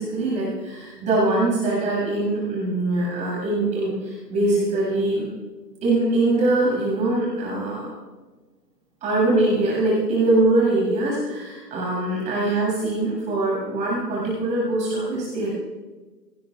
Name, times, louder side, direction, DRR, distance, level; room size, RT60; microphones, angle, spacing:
voice 1, 0.0-5.2 5.8-7.9 9.0-15.5, right 2 dB, 15° right, -5 dB, 6.7 m, -22 dB
25.5 x 19.5 x 2.4 m, 1.3 s
hypercardioid pair, 150°, 50 cm